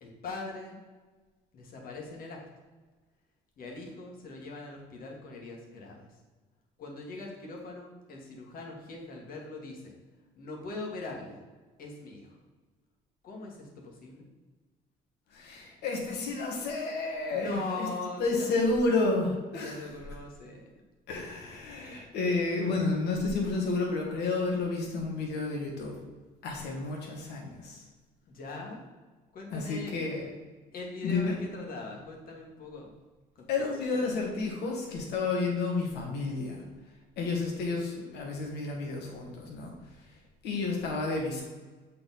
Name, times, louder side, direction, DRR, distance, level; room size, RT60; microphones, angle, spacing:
voice 1, 0.0-0.8 1.5-2.4 3.6-6.1 6.8-9.9 10.3-11.4 11.8-12.3 13.2-14.2 17.3-18.5 19.6-20.8 28.3-28.8 29.3-30.0 30.7-32.9 33.4-33.5, left 3 dB, 60° left, 0 dB, 1.9 m, -41 dB
voice 2, 15.3-17.9 18.2-19.9 21.1-26.0 26.4-27.8 29.5-30.3 31.0-31.4 33.5-36.6 37.2-39.7 40.4-41.4, left 3 dB, 80° left, 0 dB, 1.9 m, -31 dB
7.6 x 4.4 x 4.2 m, 1.3 s
cardioid pair, 110°, 17 cm